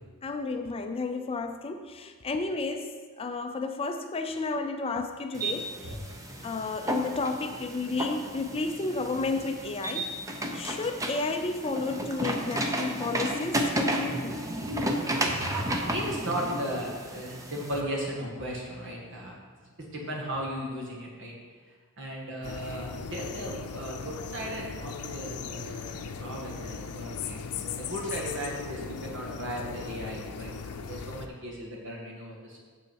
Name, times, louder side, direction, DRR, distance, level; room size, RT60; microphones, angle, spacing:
voice 1, 0.2-5.9 6.4-10.1 10.5-14.4, left 3 dB, 25° left, 6 dB, 0.4 m, -32 dB
sound 1, 5.3-17.8, right 1 dB, 15° right, 0.7 m, -32 dB
voice 2, 14.6-19.3 19.8-21.4 21.7-32.6, equal, 55° right, -2 dB, 1.9 m, -36 dB
sound 2, 22.4-31.3, left 5 dB, 85° left, 0.6 m, -38 dB
8.3 x 7.1 x 4.6 m, 1.5 s
head